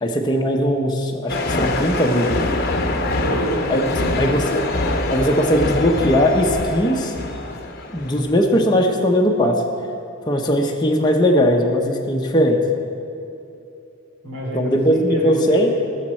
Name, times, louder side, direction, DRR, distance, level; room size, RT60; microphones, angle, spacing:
voice 1, 0.0-2.4 3.7-3.8 4.2-4.6 5.1-7.1 7.9-9.5 10.3-12.6 14.5-15.7, equal, 20° left, 0 dB, 0.8 m, -19 dB
sound 1, 1.3-8.4, left 2 dB, 45° left, 0.9 m, -24 dB
voice 2, 3.2-4.3 14.2-15.7, right 1 dB, 80° right, -3 dB, 3.3 m, -28 dB
19.5 x 7.3 x 4.3 m, 2.8 s
head